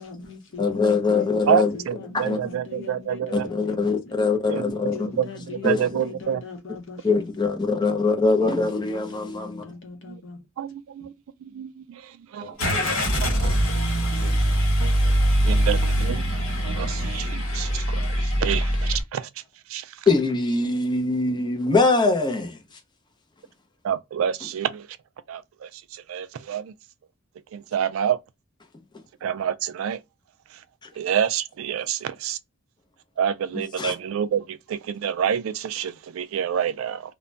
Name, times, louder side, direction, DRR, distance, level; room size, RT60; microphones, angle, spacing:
voice 1, 0.0-4.1 4.9-7.3 8.4-10.4 14.4-14.8, left 4 dB, 65° left, 0.8 m, -41 dB
voice 2, 0.6-1.8 2.1-2.4 3.3-5.1 5.6-5.9 7.0-9.6 12.4-12.5 14.2-14.3 20.1-22.6 30.8-30.9 33.8-33.9, left 3 dB, 20° left, 0.5 m, -23 dB
voice 3, 1.5-3.5 4.5-4.7 5.2-5.3 5.6-6.4 10.6-10.7 11.6-11.7 12.3-12.5 13.2-14.5 14.8-15.0 15.4-16.2 16.6-18.1 18.4-19.2 19.7-19.8 23.8-24.8 25.3-25.4 26.1-26.7 27.5-28.2 29.2-30.0 31.0-32.4 33.2-34.4 34.7-37.0, right 8 dB, 70° right, 0.3 m, -27 dB
Car / Engine starting, 12.6-19.0, equal, 85° left, 1.2 m, -23 dB
2.2 x 2.1 x 3.7 m
head